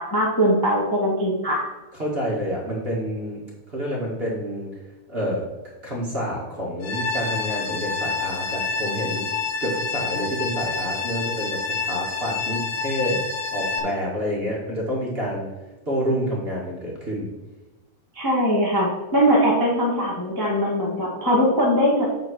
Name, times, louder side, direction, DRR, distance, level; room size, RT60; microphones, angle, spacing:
voice 1, 0.0-1.6 18.1-22.0, equal, 20° left, -5 dB, 0.6 m, -21 dB
voice 2, 1.9-3.4 3.7-4.7 5.1-5.5 5.8-9.3 9.6-13.3 13.5-15.5 15.8-17.3, equal, 25° right, -4 dB, 1.6 m, -28 dB
sound 1, 6.8-13.8, left 4 dB, 60° left, 1.9 m, -28 dB
7.9 x 4.4 x 6.4 m, 1.1 s
omnidirectional pair, 3.4 m